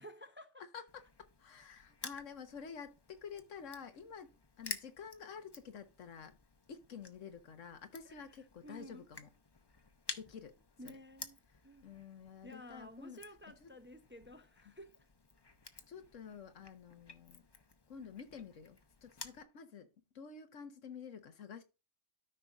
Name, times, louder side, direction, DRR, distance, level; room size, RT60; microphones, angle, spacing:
voice 1, 0.0-0.6 8.0-8.3 8.6-9.1 10.8-11.9 12.4-15.1, equal, 10° right, 0.6 m, -53 dB
voice 2, 0.7-4.3 4.6-6.4 6.7-9.3 10.1-10.6 11.5-13.2 13.6-13.7 14.6-14.7 15.9-17.5 17.9-19.9 20.1-21.6, left 6 dB, 85° left, 1.4 m, -50 dB
Crushing, 0.9-19.4, left 3 dB, 25° left, 0.7 m, -52 dB
13.0 x 5.7 x 2.4 m
omnidirectional pair, 1.3 m